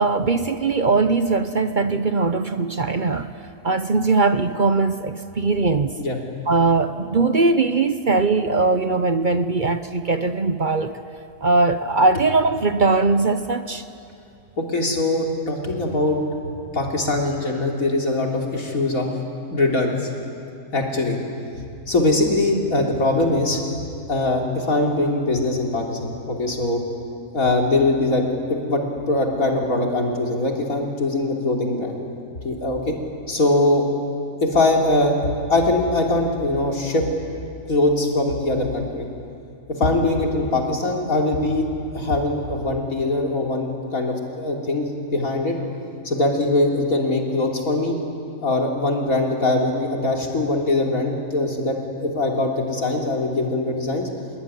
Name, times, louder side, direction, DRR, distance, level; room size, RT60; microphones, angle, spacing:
voice 1, 0.0-3.3 3.6-6.0 6.5-11.0 11.4-13.8, right 3 dB, 40° right, 0.9 m, -20 dB
voice 2, 14.6-19.1 19.5-20.1 20.7-21.2 21.5-23.6 24.1-26.8 27.3-31.9 32.4-33.0 33.3-33.9 34.4-35.2 35.5-37.1 37.7-39.1 39.8-41.7 41.9-45.5 46.0-47.9 48.4-54.1, left 2 dB, 85° left, 3.8 m, -22 dB
25.5 x 21.5 x 9.9 m
omnidirectional pair, 1.4 m